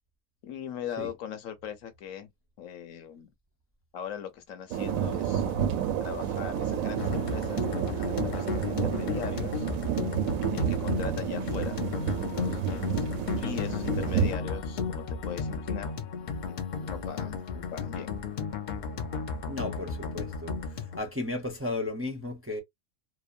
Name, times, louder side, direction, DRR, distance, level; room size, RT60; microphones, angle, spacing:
voice 1, 0.4-2.3 2.6-3.3 3.9-5.4 6.0-9.7 10.5-13.1 13.4-15.9 16.4-18.1, left 9 dB, 80° left, 1.2 m, -40 dB
sound 1, 4.7-14.3, right 9 dB, 90° right, 1.0 m, -30 dB
sound 2, 7.0-21.0, left 5 dB, 55° left, 0.5 m, -34 dB
voice 2, 19.5-22.6, left 2 dB, 15° right, 0.6 m, -34 dB
3.0 x 2.1 x 2.3 m
omnidirectional pair, 1.4 m